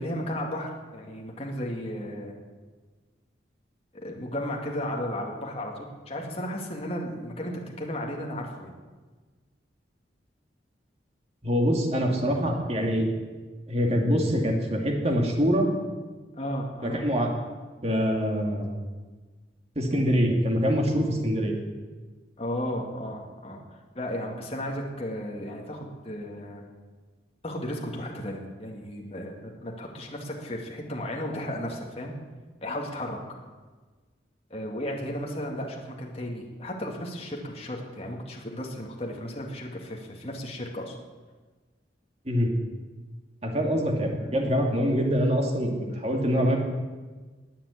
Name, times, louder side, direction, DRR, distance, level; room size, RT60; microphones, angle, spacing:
voice 1, 0.0-2.3 3.9-8.7 16.4-17.0 22.4-23.6 23.9-26.6 27.4-32.1 32.6-33.2 34.5-41.0 44.2-44.3 45.9-46.0, left 1 dB, 35° left, 0 dB, 2.2 m, -34 dB
voice 2, 11.4-13.0 13.7-15.7 16.8-17.3 17.8-18.7 19.8-21.6 42.3-42.5 43.4-46.6, equal, 35° right, 1 dB, 2.5 m, -24 dB
21.0 x 7.3 x 8.4 m, 1.3 s
head